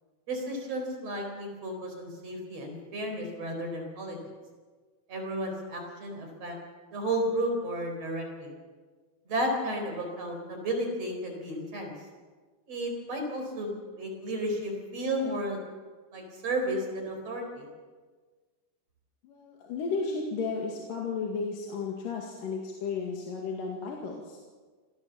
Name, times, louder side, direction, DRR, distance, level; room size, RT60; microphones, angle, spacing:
voice 1, 0.3-4.2 5.1-6.6 6.9-8.5 9.3-11.9 12.7-15.6 16.1-17.7, right 1 dB, 40° right, 3 dB, 5.6 m, -33 dB
voice 2, 19.2-24.4, left 4 dB, 65° left, 0 dB, 3.7 m, -33 dB
26.0 x 19.0 x 7.1 m, 1.4 s
omnidirectional pair, 4.4 m